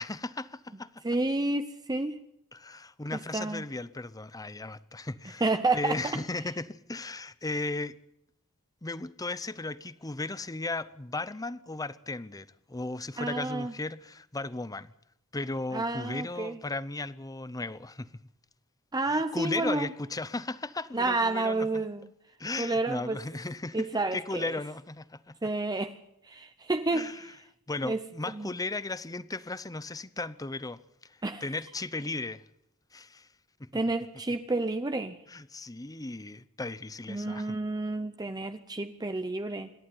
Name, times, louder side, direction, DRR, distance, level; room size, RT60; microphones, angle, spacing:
voice 1, 0.0-1.0 2.5-5.5 5.7-8.0 8.8-14.9 15.3-18.1 19.0-21.8 22.4-25.5 26.9-27.3 27.7-32.4 32.9-33.3 33.6-33.8 35.3-37.6, left 2 dB, 15° left, 0.7 m, -36 dB
voice 2, 1.0-2.2 3.1-3.6 5.4-6.0 13.2-13.7 15.7-16.6 18.9-19.9 20.9-22.0 22.6-23.2 23.7-24.5 25.4-25.9 26.3-27.1 27.8-28.0 28.3-28.5 31.2-31.4 33.7-35.2 37.1-39.7, right 2 dB, 20° right, 0.8 m, -30 dB
26.5 x 11.5 x 9.6 m
head